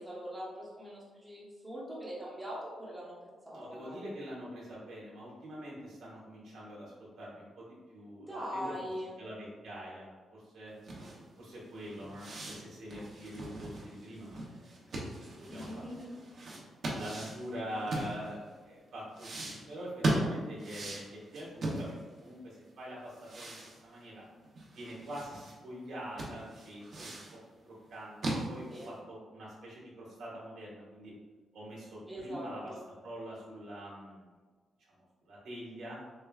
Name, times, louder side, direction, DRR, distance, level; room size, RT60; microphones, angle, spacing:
voice 1, 0.0-3.2 3.5-4.0 8.1-9.2 15.5-16.1 28.7-28.9 32.1-32.9, equal, 10° right, -7 dB, 1.0 m, -42 dB
voice 2, 3.5-8.7 9.2-10.7 11.4-14.8 15.3-16.1 16.9-24.2 24.7-27.2 27.6-31.1 31.5-32.7 33.0-34.2 34.8-36.0, equal, 90° right, -6 dB, 1.4 m, -44 dB
sound 1, 10.8-18.6 19.1-22.3 22.6-22.7 23.1-25.5 25.9-26.0 26.2-27.4 27.8-29.0, right 2 dB, 50° right, 0.8 m, -38 dB
6.4 x 2.3 x 2.4 m, 1.4 s
wide cardioid pair, 155°, 0 cm